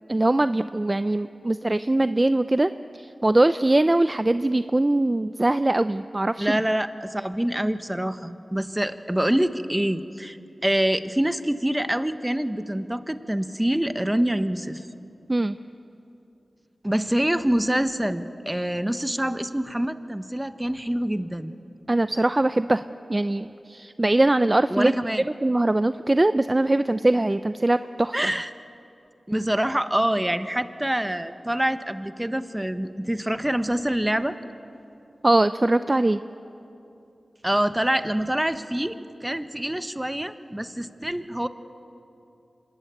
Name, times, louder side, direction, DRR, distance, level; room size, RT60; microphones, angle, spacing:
voice 1, 0.1-6.6 15.3-15.6 21.9-22.8 23.1-24.9 25.4-28.1 35.2-36.2, right 2 dB, 30° right, 12 dB, 0.5 m, -22 dB
voice 2, 6.4-10.4 10.6-14.9 16.8-21.6 24.7-25.2 28.1-28.5 29.3-34.4 37.4-41.5, right 1 dB, 15° right, 10 dB, 1.3 m, -26 dB
26.0 x 20.5 x 9.2 m, 2.8 s
cardioid pair, 45°, 0 cm